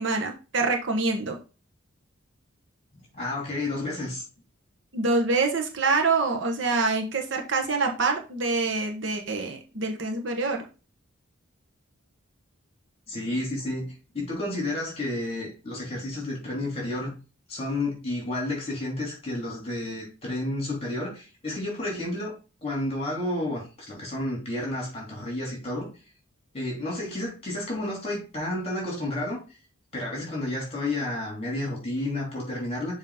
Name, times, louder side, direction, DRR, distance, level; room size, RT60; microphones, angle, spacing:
voice 1, 0.0-1.4 4.9-10.7, right 3 dB, 60° right, 1.1 m, -26 dB
voice 2, 2.9-4.2 13.1-17.1 17.5-22.3 22.6-25.9 26.5-29.4 29.9-33.0, left 1 dB, 30° left, 3.4 m, -31 dB
7.0 x 3.1 x 5.0 m
head